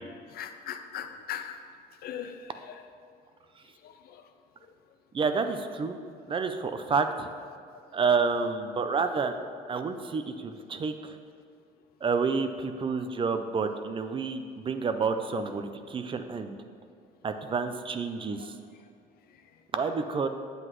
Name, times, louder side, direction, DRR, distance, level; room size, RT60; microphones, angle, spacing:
voice 1, 0.3-1.6 2.0-2.4 2.6-2.8 3.8-4.2 18.4-18.5, left 9 dB, 65° left, 8 dB, 0.6 m, -39 dB
voice 2, 5.1-6.0 6.3-7.3 7.9-9.4 9.7-11.2 12.0-16.6 17.2-18.5 19.7-20.3, right 5 dB, 30° right, 8 dB, 0.4 m, -29 dB
7.9 x 7.8 x 3.0 m, 2.2 s
cardioid pair, 110°, 17 cm